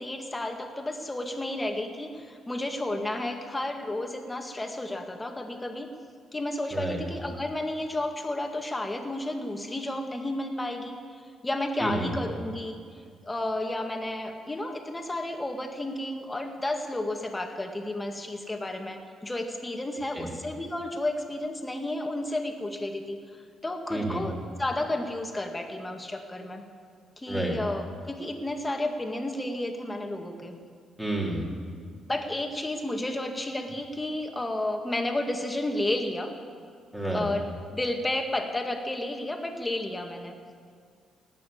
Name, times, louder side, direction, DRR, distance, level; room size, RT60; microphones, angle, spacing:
voice 1, 0.0-5.9 6.3-12.8 13.2-26.6 27.2-30.6 32.1-36.3 37.1-37.5 37.7-40.4, left 1 dB, 15° left, 4 dB, 1.9 m, -32 dB
voice 2, 6.7-7.0 11.8-12.1 20.1-20.3 23.9-24.3 27.3-27.5 31.0-31.6 36.9-37.3, right 1 dB, 10° right, -2 dB, 3.6 m, -30 dB
18.0 x 9.4 x 8.6 m, 2.1 s
cardioid pair, 90°, 0 cm